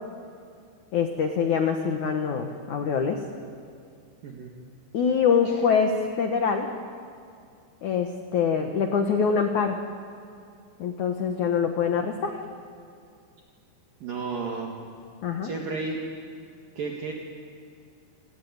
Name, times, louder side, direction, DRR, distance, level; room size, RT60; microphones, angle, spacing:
voice 1, 0.9-3.2 4.9-6.7 7.8-9.8 10.8-12.3 15.2-15.5, left 6 dB, 85° left, 5 dB, 1.7 m, -24 dB
voice 2, 14.0-14.8 15.4-16.0 16.8-17.1, right 4 dB, 55° right, 0 dB, 3.0 m, -32 dB
28.0 x 19.0 x 9.5 m, 2.3 s
omnidirectional pair, 5.7 m